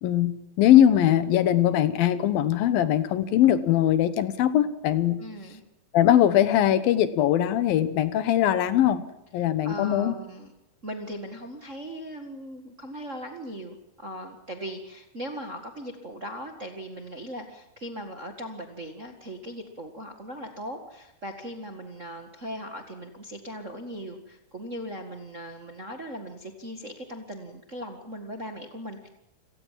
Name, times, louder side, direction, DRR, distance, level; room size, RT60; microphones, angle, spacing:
voice 1, 0.0-5.2 5.9-9.0 9.3-10.1, left 11 dB, 70° left, 14 dB, 2.8 m, -21 dB
voice 2, 5.2-5.6 9.6-10.5 10.8-29.1, equal, 45° right, 5 dB, 0.9 m, -39 dB
28.5 x 18.0 x 7.5 m, 0.85 s
omnidirectional pair, 4.6 m